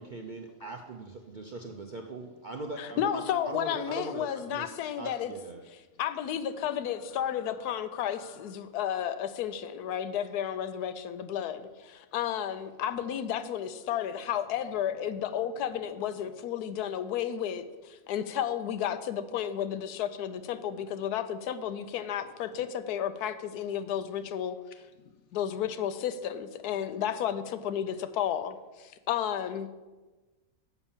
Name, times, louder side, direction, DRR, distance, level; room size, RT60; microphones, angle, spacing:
voice 1, 0.0-5.6, right 2 dB, 55° right, 2 dB, 0.5 m, -40 dB
voice 2, 2.8-5.3 6.0-24.6 25.3-29.7, left 9 dB, 85° left, 11 dB, 1.1 m, -32 dB
voice 3, 6.7-8.5 21.0-21.1 25.0-25.1 26.8-26.9, left 8 dB, 70° left, 9 dB, 0.7 m, -57 dB
6.9 x 5.7 x 7.1 m, 1.2 s
omnidirectional pair, 1.6 m